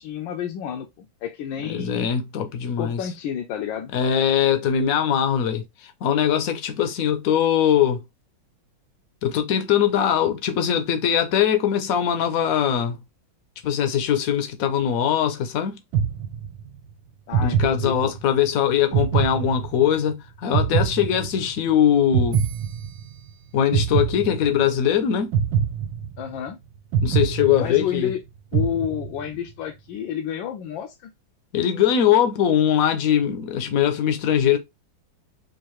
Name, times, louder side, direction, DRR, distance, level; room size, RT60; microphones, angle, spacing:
voice 1, 0.0-2.1 2.8-3.9 17.3-18.1 26.2-26.6 27.6-28.2 28.5-31.1, left 9 dB, 80° left, 1.3 m, -30 dB
voice 2, 1.6-3.0 3.9-8.0 9.2-13.0 13.6-15.8 17.4-22.4 23.5-25.3 27.0-28.1 31.5-34.6, left 9 dB, 65° left, 0.9 m, -21 dB
sound 1, 15.9-16.8 17.3-18.4 18.9-20.1 20.5-21.7 22.1-23.3 23.7-24.8 25.3-26.5 26.9-28.1 28.5-29.4, right 8 dB, 80° right, 1.3 m, -24 dB
4.6 x 2.6 x 3.0 m
omnidirectional pair, 2.1 m